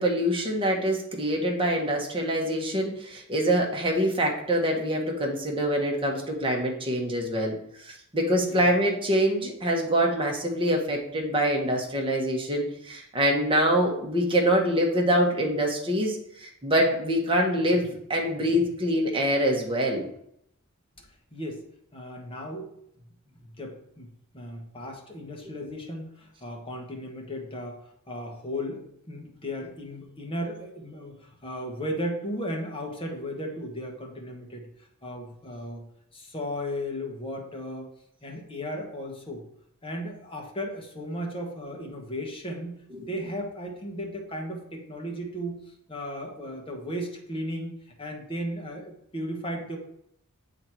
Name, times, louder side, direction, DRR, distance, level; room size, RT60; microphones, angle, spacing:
voice 1, 0.0-20.0 42.9-43.1, equal, 25° right, 0 dB, 1.4 m, -25 dB
voice 2, 21.3-21.6 21.9-22.7 23.3-24.1 24.3-27.8 28.1-34.7 35.0-35.8 36.1-37.9 38.2-39.4 39.8-42.8 43.1-45.6 45.9-49.8, equal, 25° left, 1 dB, 1.3 m, -35 dB
8.0 x 4.0 x 4.5 m, 0.73 s
head